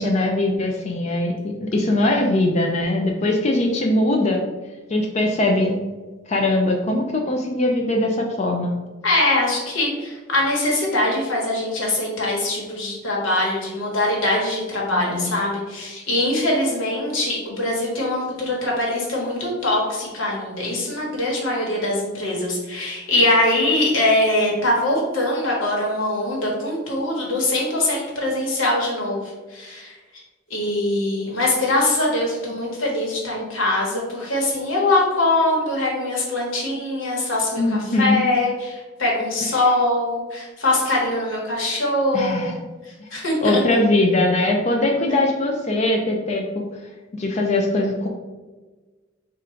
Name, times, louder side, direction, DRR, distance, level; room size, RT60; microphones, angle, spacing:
voice 1, 0.0-4.4 4.9-5.8 6.3-8.7 14.9-15.3 37.5-38.2 42.1-42.6 43.4-46.7 47.1-48.1, left 2 dB, 35° left, 1 dB, 0.4 m, -21 dB
voice 2, 9.0-29.2 29.5-29.9 30.5-42.5 43.1-43.6, left 1 dB, 85° left, -2 dB, 1.3 m, -22 dB
3.6 x 2.4 x 4.4 m, 1.3 s
head